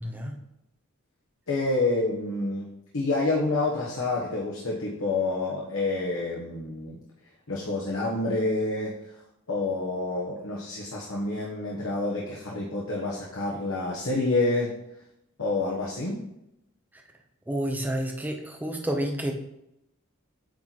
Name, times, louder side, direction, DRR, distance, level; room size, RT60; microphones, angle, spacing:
voice 1, 0.0-0.4 17.5-19.3, right 1 dB, 10° right, 3 dB, 0.7 m, -29 dB
voice 2, 1.5-2.7 2.9-7.0 7.5-8.9 9.5-14.7 15.4-16.2, left 2 dB, 70° left, -4 dB, 1.1 m, -28 dB
8.5 x 3.1 x 4.0 m, 0.83 s
head